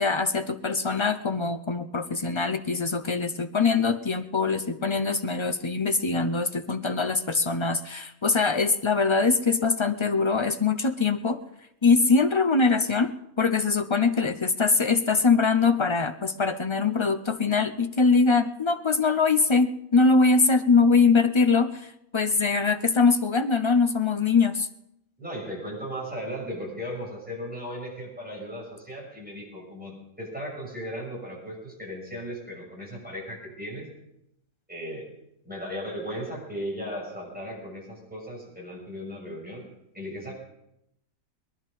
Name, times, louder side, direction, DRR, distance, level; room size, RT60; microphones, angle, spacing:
voice 1, 0.0-11.4 11.8-24.7, left 4 dB, 50° left, 9 dB, 0.3 m, -23 dB
voice 2, 25.2-33.9 34.7-35.1 35.4-39.6 39.9-40.3, equal, 5° right, -3 dB, 6.5 m, -36 dB
21.5 x 11.0 x 5.5 m, 0.84 s
omnidirectional pair, 1.5 m